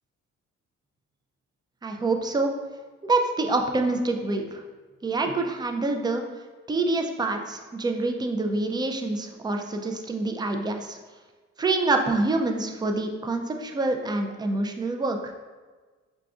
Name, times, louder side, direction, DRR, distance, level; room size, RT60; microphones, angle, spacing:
voice 1, 1.8-2.5 3.0-4.6 5.0-6.2 6.7-11.0 11.6-15.3, right 2 dB, 15° right, 4 dB, 0.3 m, -26 dB
4.9 x 2.4 x 2.3 m, 1.4 s
cardioid pair, 90°, 30 cm